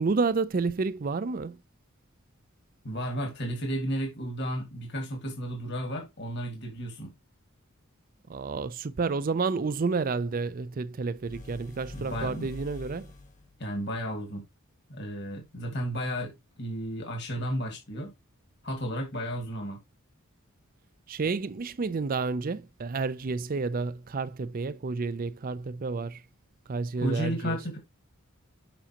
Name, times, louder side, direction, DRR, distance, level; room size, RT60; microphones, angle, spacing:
voice 1, 0.0-1.6 8.3-13.1 21.1-26.2 26.7-27.6, right 4 dB, 40° right, 0.4 m, -30 dB
voice 2, 2.8-7.1 11.9-12.5 13.6-14.4 14.9-18.1 18.6-19.8 27.0-27.8, equal, 55° left, 1.9 m, -33 dB
sound 1, 11.2-13.6, left 2 dB, 35° left, 1.2 m, -45 dB
7.1 x 5.5 x 2.9 m
head